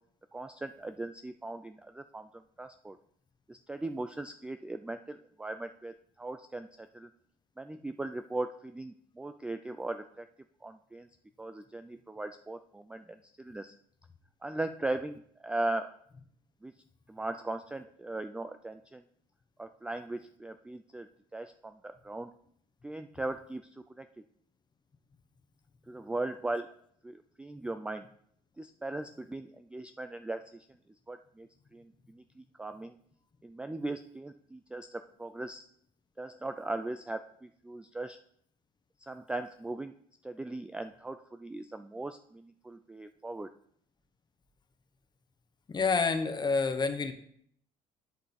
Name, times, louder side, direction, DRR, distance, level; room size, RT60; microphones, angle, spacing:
voice 1, 0.3-3.0 3.5-7.1 7.6-10.3 10.6-11.1 11.4-13.7 14.4-15.9 16.6-16.7 17.1-19.0 19.6-22.3 22.8-24.1 25.9-26.7 27.0-28.1 28.6-30.7 31.1-32.9 33.4-35.6 36.2-38.2 39.0-40.0 40.2-43.5, right 2 dB, 5° right, 9 dB, 0.3 m, -39 dB
voice 2, 45.7-47.1, left 4 dB, 25° left, 9 dB, 0.9 m, -28 dB
10.5 x 5.0 x 4.2 m, 0.66 s
cardioid pair, 110°, 17 cm